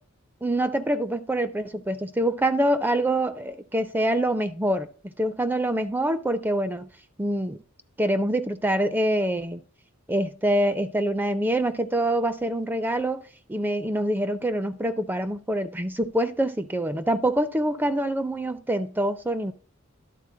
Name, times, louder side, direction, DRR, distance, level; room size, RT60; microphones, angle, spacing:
voice 1, 0.4-4.9 5.2-6.9 7.2-7.6 8.0-9.6 10.1-13.2 13.5-19.5, right 1 dB, 10° right, 0.4 m, -25 dB
11.5 x 3.9 x 3.7 m
head